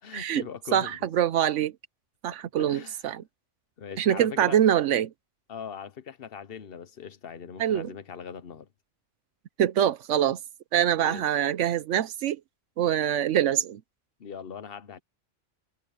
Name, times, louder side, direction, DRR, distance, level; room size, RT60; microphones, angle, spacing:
voice 1, 0.0-1.0 2.6-3.0 3.8-4.6 5.5-8.7 11.0-11.3 14.2-15.0, left 7 dB, 50° left, 1.1 m, -40 dB
voice 2, 0.7-1.7 2.2-3.2 4.0-5.1 7.6-7.9 9.6-10.4 10.7-12.4 12.8-13.8, right 10 dB, 80° right, 1.0 m, -24 dB
omnidirectional pair, 1.3 m